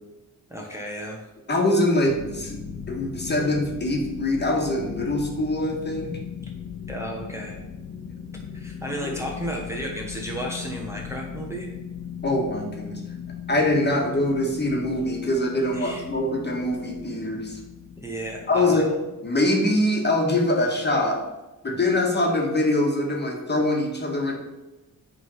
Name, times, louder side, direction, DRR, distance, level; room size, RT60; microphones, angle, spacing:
voice 1, 0.5-1.2 6.9-7.6 8.5-11.7 15.7-16.0 18.0-18.9, right 1 dB, 10° right, -2 dB, 1.0 m, -33 dB
voice 2, 1.5-2.6 2.9-6.1 9.0-9.1 12.2-13.0 13.5-17.6 18.5-18.9 19.2-21.2 21.6-24.3, left 1 dB, 30° left, 0 dB, 1.6 m, -23 dB
sound 1, 2.1-21.2, left 7 dB, 75° left, 1.1 m, -39 dB
8.3 x 3.8 x 5.5 m, 1.1 s
wide cardioid pair, 120°, 33 cm